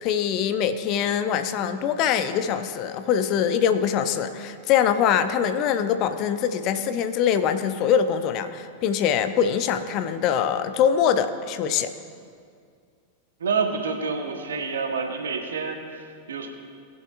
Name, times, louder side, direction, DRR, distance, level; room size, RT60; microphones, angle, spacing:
voice 1, 0.0-11.9, left 8 dB, 40° left, 10 dB, 0.6 m, -23 dB
voice 2, 13.4-16.5, right 5 dB, 65° right, 3 dB, 1.2 m, -28 dB
19.5 x 7.9 x 2.5 m, 2.2 s
figure-of-eight pair, 90°, 0 cm